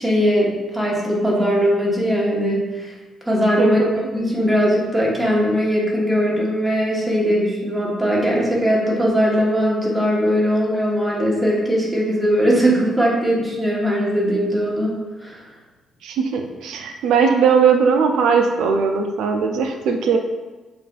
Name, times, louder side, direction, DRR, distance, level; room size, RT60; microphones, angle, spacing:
voice 1, 0.0-2.9 3.3-3.8 4.1-15.0 15.2-15.5, equal, 10° right, -4 dB, 1.3 m, -19 dB
voice 2, 3.6-4.1 16.0-20.2, right 6 dB, 80° right, 4 dB, 0.4 m, -19 dB
7.2 x 2.5 x 2.4 m, 1.2 s
cardioid pair, 90°, 0 cm